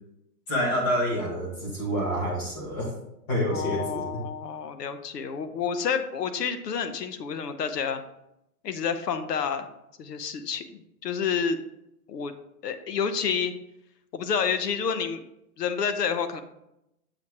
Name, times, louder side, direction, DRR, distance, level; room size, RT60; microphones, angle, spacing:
voice 1, 0.5-3.0 3.3-4.0, equal, 15° left, 0 dB, 1.0 m, -27 dB
voice 2, 3.5-8.0 8.6-9.7 10.0-11.6 12.1-12.3 12.6-13.5 14.1-15.2 15.6-16.4, left 6 dB, 90° left, 9 dB, 0.9 m, -29 dB
7.0 x 2.9 x 4.6 m, 0.84 s
hypercardioid pair, 160°, 46 cm